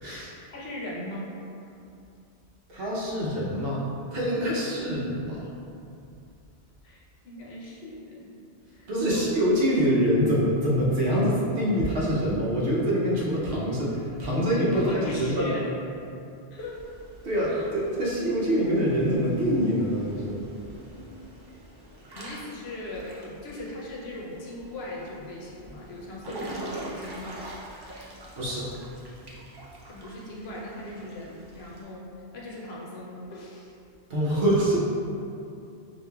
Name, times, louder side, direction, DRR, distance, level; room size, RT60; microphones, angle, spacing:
voice 1, 0.0-1.3 6.8-8.3 8.7-9.3 14.7-15.7 16.5-16.8 17.5-17.7 20.8-21.1 22.1-27.4 29.9-33.8, left 1 dB, 75° left, -3 dB, 0.9 m, -38 dB
voice 2, 2.7-3.8 4.1-5.5 8.9-15.5 17.2-20.4 28.4-28.7 34.1-34.8, equal, 65° right, -5 dB, 0.9 m, -25 dB
Water / Splash splatter / Drip, 16.6-31.8, right 1 dB, 40° right, 0.3 m, -45 dB
4.8 x 2.5 x 2.2 m, 2.6 s
omnidirectional pair, 1.1 m